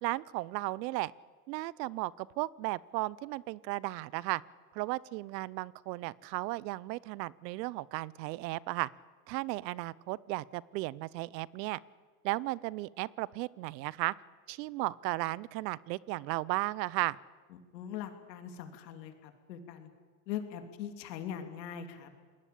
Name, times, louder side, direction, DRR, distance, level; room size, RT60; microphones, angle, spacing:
voice 1, 0.0-1.1 1.5-4.4 4.7-8.9 9.3-11.8 12.2-14.1 14.5-17.2, right 19 dB, 80° right, 23 dB, 0.8 m, -35 dB
voice 2, 17.7-19.9 20.3-22.1, left 9 dB, 85° left, 6 dB, 3.2 m, -41 dB
28.0 x 20.5 x 8.6 m, 1.5 s
supercardioid pair, 90°, 49 cm